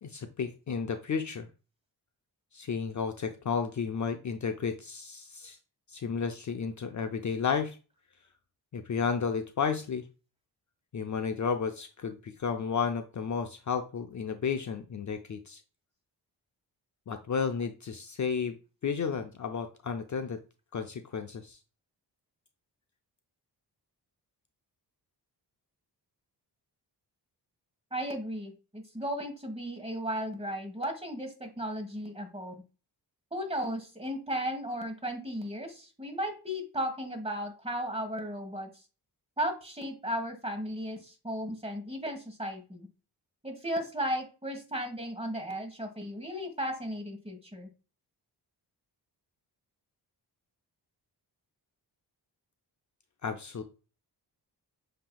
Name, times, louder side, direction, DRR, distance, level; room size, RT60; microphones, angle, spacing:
voice 1, 0.0-1.5 2.5-5.6 5.9-7.8 8.7-10.0 10.9-15.6 17.1-18.6 18.8-20.4 20.7-21.6 53.2-53.6, left 6 dB, 45° left, 6 dB, 0.5 m, -32 dB
voice 2, 27.9-32.6 33.3-38.7 39.4-42.9 43.4-47.7, equal, 15° right, 4 dB, 1.4 m, -35 dB
7.4 x 2.9 x 2.3 m, 0.33 s
cardioid pair, 80°, 42 cm